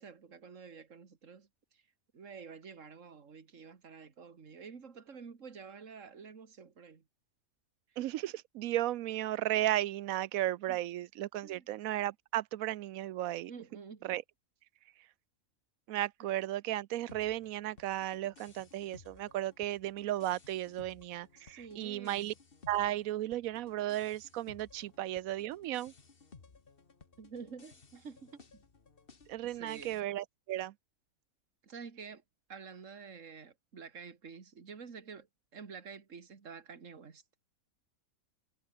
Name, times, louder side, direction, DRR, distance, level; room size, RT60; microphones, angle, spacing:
voice 1, 0.0-1.5 1.7-1.8 2.1-7.0 10.7-10.8 11.4-11.7 13.5-14.1 21.4-22.3 27.2-28.6 29.4-30.0 31.6-32.2 32.5-35.3 35.5-37.2, right 5 dB, 60° right, 2.3 m, -49 dB
voice 2, 8.0-13.5 14.0-14.2 15.9-22.3 22.7-25.9 29.3-30.7, right 14 dB, 80° right, 1.0 m, -35 dB
sound 1, 17.1-30.0, left 4 dB, 40° left, 1.9 m, -59 dB
omnidirectional pair, 1.5 m